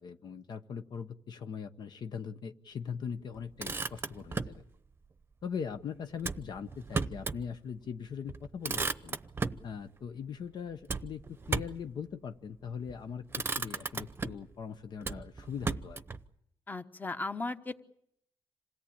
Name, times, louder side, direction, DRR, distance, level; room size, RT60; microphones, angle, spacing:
voice 1, 0.0-4.6 5.4-9.2 9.6-11.2 11.5-13.2 13.6-16.0, left 7 dB, 55° left, 9 dB, 0.9 m, -40 dB
Motor vehicle (road), 3.4-4.6 6.2-7.4 7.8-7.9 8.3-9.7 10.9-11.9 12.7-13.0 13.3-14.5 15.0-16.2, right 4 dB, 25° right, 0.8 m, -35 dB
voice 2, 16.7-17.8, left 3 dB, 20° left, 10 dB, 1.2 m, -36 dB
27.0 x 17.0 x 8.7 m, 0.75 s
cardioid pair, 105°, 9 cm